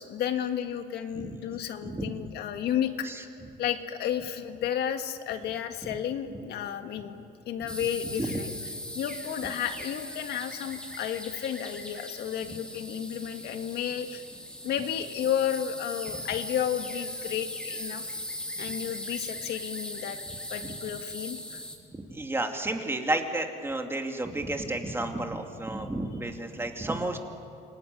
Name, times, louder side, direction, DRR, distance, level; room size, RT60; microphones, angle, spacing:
voice 1, 0.0-3.3 3.6-8.5 9.0-14.2 14.6-18.2 18.6-20.2 20.5-21.6, left 9 dB, 75° left, 6 dB, 1.8 m, -32 dB
voice 2, 1.8-2.1 3.0-3.2 8.2-8.4 20.6-20.7 21.9-27.2, right 2 dB, 15° right, 4 dB, 2.5 m, -31 dB
sound 1, 7.7-21.8, left 1 dB, 5° left, 3.5 m, -39 dB
27.0 x 18.5 x 9.6 m, 2.5 s
cardioid pair, 110°, 17 cm